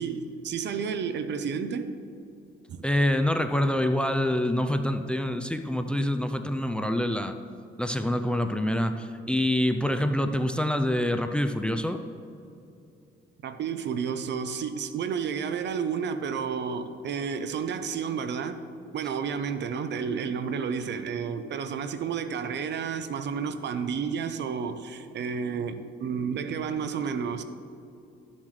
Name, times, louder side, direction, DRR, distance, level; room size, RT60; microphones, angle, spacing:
voice 1, 0.0-2.0 2.7-2.8 13.4-18.6 18.9-27.4, right 6 dB, 60° right, 10 dB, 0.7 m, -31 dB
voice 2, 2.8-7.4 7.8-12.0, left 1 dB, 5° left, 8 dB, 0.5 m, -26 dB
13.0 x 7.3 x 3.2 m, 2.7 s
cardioid pair, 90°, 20 cm